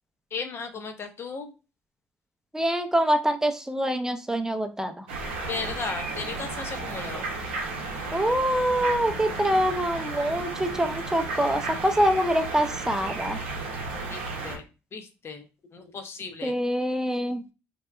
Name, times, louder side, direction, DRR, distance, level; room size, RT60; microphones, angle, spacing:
voice 1, 0.3-1.5 5.5-7.2 13.9-14.6 14.9-15.5 15.7-16.5, left 5 dB, 45° left, 6 dB, 0.6 m, -36 dB
voice 2, 2.5-5.1 8.1-13.4 16.4-17.4, equal, 10° right, 7 dB, 0.4 m, -25 dB
sound 1, 5.1-14.6, right 3 dB, 90° right, 0.6 m, -33 dB
2.8 x 2.1 x 2.2 m, 0.30 s
hypercardioid pair, 60°, 6 cm